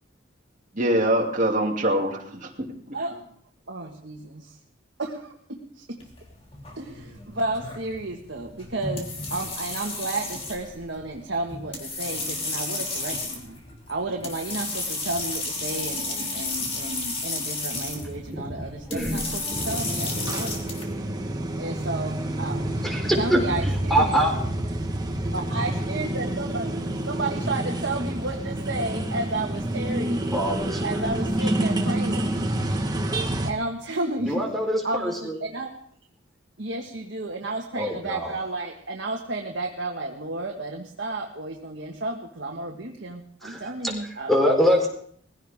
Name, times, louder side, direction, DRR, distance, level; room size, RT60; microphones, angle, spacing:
voice 1, 0.7-2.5, right 1 dB, 40° right, 0 dB, 2.6 m, -23 dB
voice 2, 2.9-3.3 3.7-4.6 5.0-6.0 6.7-13.6 13.9-20.8 21.6-22.8 23.2-24.1 25.3-26.7 27.1-30.3 30.8-32.4 33.4-34.4 34.8-35.8 36.6-44.3, right 2 dB, 70° right, 0 dB, 1.6 m, -32 dB
sound 1, 6.0-20.8, left 3 dB, 30° left, 3.0 m, -33 dB
voice 3, 18.9-19.6 22.6-24.3 30.3-31.1 31.4-31.5 34.3-35.4 37.7-38.3 43.4-43.9 44.3-44.9, equal, ahead, 1 dB, 4.1 m, -25 dB
sound 2, 19.5-33.5, right 1 dB, 20° right, 1.4 m, -28 dB
21.0 x 16.0 x 3.6 m, 0.62 s
head